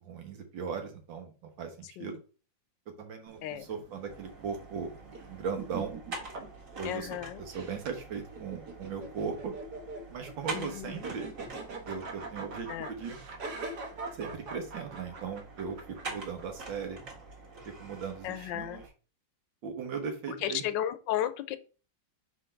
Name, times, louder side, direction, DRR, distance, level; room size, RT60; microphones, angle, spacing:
voice 1, 0.0-2.2 3.0-4.9 5.3-6.0 6.8-7.1 7.4-9.5 10.1-11.3 11.9-13.2 14.1-15.8 16.0-17.0 17.8-18.9 19.6-20.6, right 6 dB, 90° right, 2.0 m, -38 dB
sound 1, 3.3-16.9, right 3 dB, 65° right, 1.6 m, -44 dB
sound 2, 4.1-18.9, right 3 dB, 45° right, 1.9 m, -46 dB
voice 2, 6.8-7.4 10.5-11.0 12.7-12.9 18.2-18.8 20.4-21.6, left 11 dB, 80° left, 1.3 m, -34 dB
4.5 x 4.5 x 5.7 m
omnidirectional pair, 2.0 m